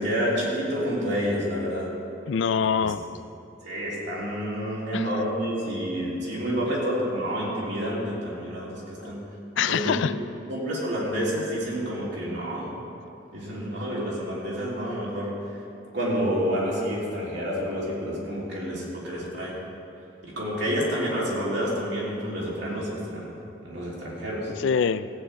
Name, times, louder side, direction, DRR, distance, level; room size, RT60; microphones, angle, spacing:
voice 1, 0.0-1.9 2.8-2.9 3.6-9.2 9.7-10.0 10.5-12.7 13.3-15.3 15.9-19.6 20.2-23.3 23.6-24.5, equal, 60° right, -6 dB, 3.3 m, -29 dB
voice 2, 2.3-3.1 4.9-5.1 6.7-6.8 9.6-10.1 24.6-25.1, left 6 dB, 65° left, 14 dB, 0.4 m, -24 dB
16.0 x 9.0 x 4.8 m, 2.7 s
head